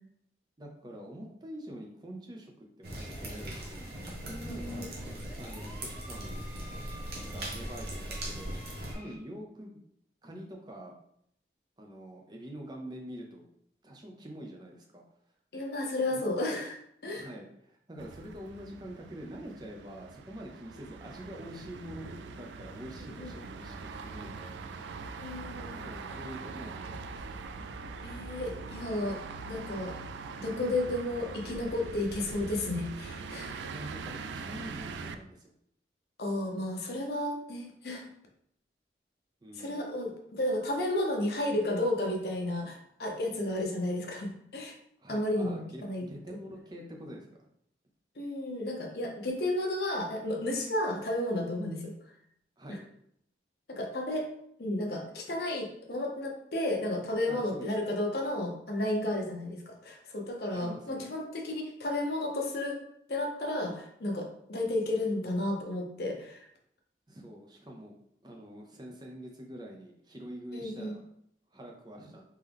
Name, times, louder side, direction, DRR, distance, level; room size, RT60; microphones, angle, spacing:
voice 1, 0.6-2.5 2.8-4.9 5.4-6.5 7.3-8.5 8.9-9.8 10.2-10.9 11.8-13.5 13.8-15.0 16.1-16.2 17.2-24.6 25.7-27.3 33.7-35.5 39.4-39.9 45.0-47.5 52.6-52.8 57.3-57.9 60.5-61.1 67.1-67.9 68.2-71.0 71.5-72.2, equal, 25° right, 0 dB, 0.6 m, -45 dB
sound 1, 2.8-8.9, right 1 dB, 60° right, 0.9 m, -39 dB
sound 2, 3.1-9.2, equal, 10° left, 0.7 m, -52 dB
voice 2, 4.5-5.0 15.5-17.3 23.1-23.4 25.2-25.8 28.0-29.2 29.4-29.9 30.4-33.6 36.2-38.1 39.6-44.7 45.1-46.4 48.2-51.9 52.7-52.8 53.7-54.3 54.6-62.8 63.1-66.4 70.5-71.0, left 1 dB, 65° left, 1 dB, 0.8 m, -32 dB
sound 3, 18.0-35.2, right 4 dB, 85° right, 0.3 m, -42 dB
3.6 x 2.9 x 3.4 m, 0.71 s
head